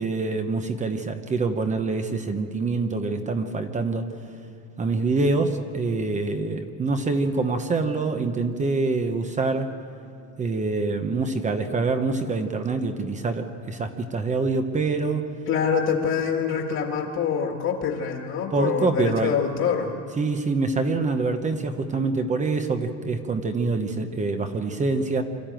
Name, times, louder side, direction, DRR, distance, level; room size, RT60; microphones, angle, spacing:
voice 1, 0.0-4.1 4.8-9.7 10.4-15.3 18.5-19.3 20.2-25.2, right 3 dB, 20° right, 7 dB, 0.9 m, -25 dB
voice 2, 15.5-19.9, left 7 dB, 40° left, 2 dB, 1.9 m, -25 dB
25.5 x 13.0 x 9.0 m, 2.3 s
cardioid pair, 160°, 39 cm